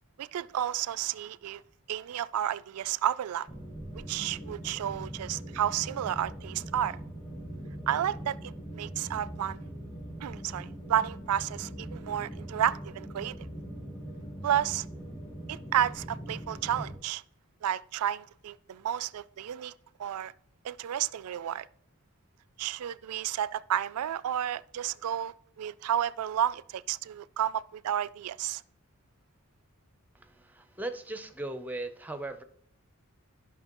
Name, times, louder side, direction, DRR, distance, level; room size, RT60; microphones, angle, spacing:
voice 1, 0.2-1.6 1.9-3.5 4.1-7.0 7.9-9.6 10.2-13.3 14.4-14.9 15.5-17.2 17.6-19.7 20.0-20.3 20.6-21.7 22.6-28.6, right 10 dB, 80° right, 0.3 m, -31 dB
sound 1, 3.5-16.9, right 1 dB, 25° left, 1.5 m, -41 dB
voice 2, 30.1-32.4, right 2 dB, 5° right, 0.5 m, -38 dB
11.0 x 5.8 x 3.0 m
head